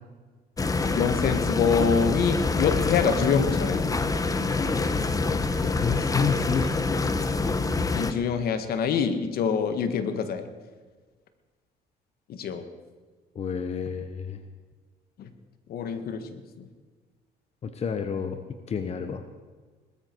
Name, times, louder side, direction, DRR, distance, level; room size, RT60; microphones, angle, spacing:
sound 1, 0.6-8.1, left 3 dB, 20° left, 1.1 m, -26 dB
voice 1, 0.8-3.8 7.9-10.5 12.3-12.6 15.2-15.3 15.7-16.7, left 6 dB, 65° left, 9 dB, 1.7 m, -26 dB
voice 2, 5.2-6.7 13.3-14.4 17.6-18.4 18.7-19.2, left 6 dB, 40° left, 8 dB, 1.1 m, -29 dB
19.5 x 13.5 x 4.7 m, 1.4 s
cardioid pair, 110°, 17 cm